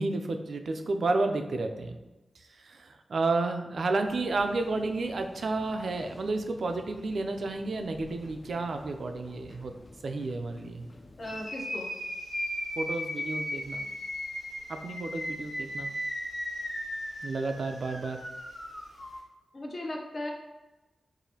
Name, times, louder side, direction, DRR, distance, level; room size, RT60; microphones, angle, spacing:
voice 1, 0.0-2.0 2.6-9.7 10.0-10.8 12.8-13.9 14.7-15.9 17.2-18.2, right 3 dB, 65° right, 6 dB, 0.3 m, -31 dB
sound 1, 4.1-11.5, left 2 dB, 30° left, 0.3 m, -51 dB
sound 2, 11.2-19.2, left 1 dB, 90° left, 1.3 m, -36 dB
voice 2, 11.2-11.9 19.5-20.3, left 1 dB, 45° left, -1 dB, 0.7 m, -37 dB
4.8 x 2.5 x 2.8 m, 1.1 s
wide cardioid pair, 125°, 0 cm